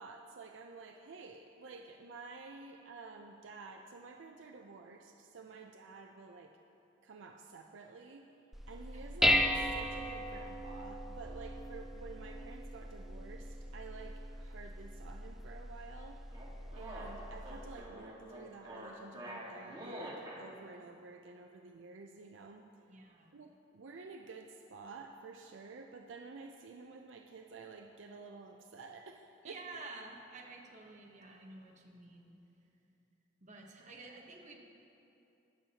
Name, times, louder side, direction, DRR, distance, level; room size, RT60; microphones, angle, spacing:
voice 1, 0.0-6.6 7.0-8.2 8.7-16.2 16.7-22.7 23.3-29.6, right 4 dB, 75° right, 3 dB, 0.5 m, -51 dB
Dishes pots and pans, 8.5-17.8, equal, ahead, 0.4 m, -37 dB
sound 1, 16.3-20.4, right 1 dB, 25° right, 1.7 m, -46 dB
voice 2, 22.9-23.3 29.4-32.4 33.4-34.6, right 3 dB, 40° right, 0 dB, 1.1 m, -50 dB
20.5 x 7.0 x 2.9 m, 2.8 s
head